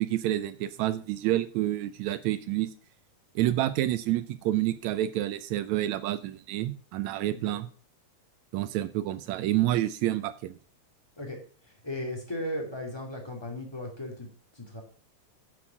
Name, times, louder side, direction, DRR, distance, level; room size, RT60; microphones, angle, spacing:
voice 1, 0.0-2.7 3.4-7.7 8.5-10.6, right 14 dB, 80° right, 13 dB, 1.9 m, -28 dB
voice 2, 11.8-14.3 14.5-14.8, left 1 dB, 10° left, 1 dB, 1.9 m, -36 dB
9.9 x 6.2 x 6.0 m, 0.41 s
omnidirectional pair, 3.3 m